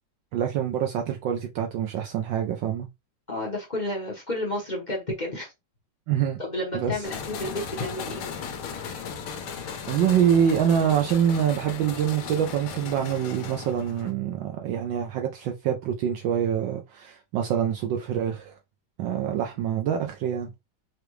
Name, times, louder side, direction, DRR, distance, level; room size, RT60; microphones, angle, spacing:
voice 1, 0.3-2.9 6.1-6.4 6.7-6.9 9.9-18.5 19.0-20.5, right 9 dB, 70° right, 1.2 m, -25 dB
voice 2, 3.3-5.5 6.4-8.2, left 1 dB, 35° left, 0.7 m, -31 dB
sound 1, 7.0-14.1, left 6 dB, 80° left, 1.6 m, -36 dB
4.9 x 2.2 x 3.1 m
omnidirectional pair, 2.3 m